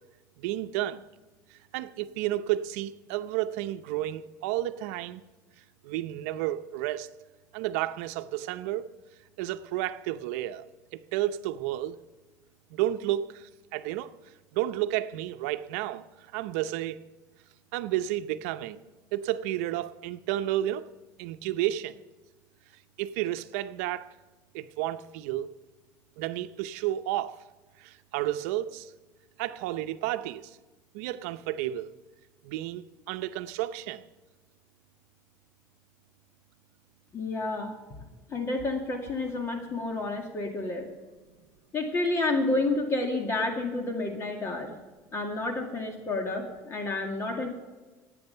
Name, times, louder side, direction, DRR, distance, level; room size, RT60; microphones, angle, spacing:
voice 1, 0.4-1.0 1.7-5.2 5.8-7.1 7.5-8.9 9.4-10.6 10.9-12.0 12.7-13.4 13.7-14.1 14.5-16.0 16.3-17.0 17.7-18.8 19.1-20.9 21.2-22.0 23.0-24.1 24.5-25.5 26.2-27.3 27.8-28.9 29.4-30.5 30.9-31.9 32.4-34.0, right 13 dB, 85° right, 0.7 m, -31 dB
voice 2, 37.1-37.7 38.3-40.9 41.7-44.7 45.1-47.5, left 2 dB, 35° left, 2.1 m, -30 dB
17.5 x 8.7 x 5.6 m
supercardioid pair, 115°, 8 cm